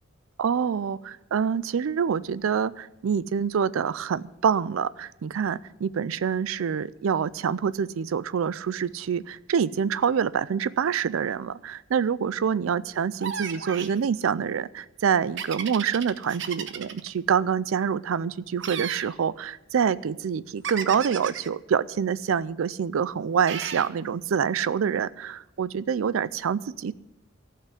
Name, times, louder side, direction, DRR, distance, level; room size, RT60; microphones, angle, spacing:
voice 1, 0.4-26.9, right 7 dB, 80° right, 18 dB, 0.4 m, -26 dB
sound 1, 13.2-14.0 15.4-17.1 18.6-19.1 20.6-21.5 23.5-23.9, right 7 dB, 65° right, 0.9 m, -34 dB
15.0 x 5.7 x 9.9 m, 0.90 s
head